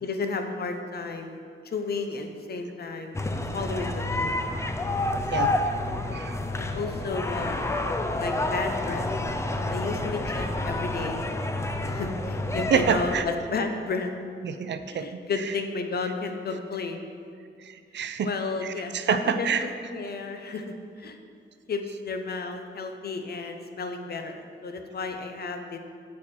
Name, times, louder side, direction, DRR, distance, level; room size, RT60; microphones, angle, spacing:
voice 1, 0.0-1.4 1.6-3.2 3.5-4.3 6.5-7.8 8.2-9.1 9.7-11.3 11.8-14.1 14.9-17.1 18.2-21.2 21.7-25.8, left 4 dB, 50° left, 5 dB, 0.8 m, -32 dB
sound 1, 3.1-13.2, left 2 dB, 15° left, 0.4 m, -29 dB
voice 2, 12.7-13.2 14.4-15.1 17.6-18.3 18.6-19.6, right 7 dB, 60° right, 10 dB, 0.5 m, -27 dB
7.2 x 6.4 x 5.9 m, 2.3 s
wide cardioid pair, 155°, 20 cm